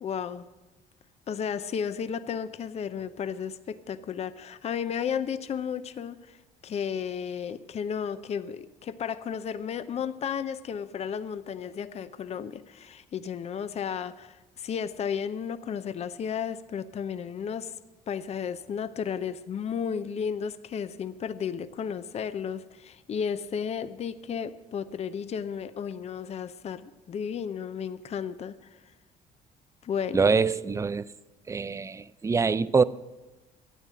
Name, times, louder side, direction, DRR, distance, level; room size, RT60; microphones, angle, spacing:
voice 1, 0.0-0.5 1.3-6.4 6.6-17.7 18.1-28.7 29.8-30.3, left 7 dB, 40° left, 0.6 m, -33 dB
voice 2, 30.1-31.1 31.5-32.8, right 5 dB, 20° right, 0.4 m, -24 dB
12.5 x 9.2 x 7.5 m
cardioid pair, 110°, 17 cm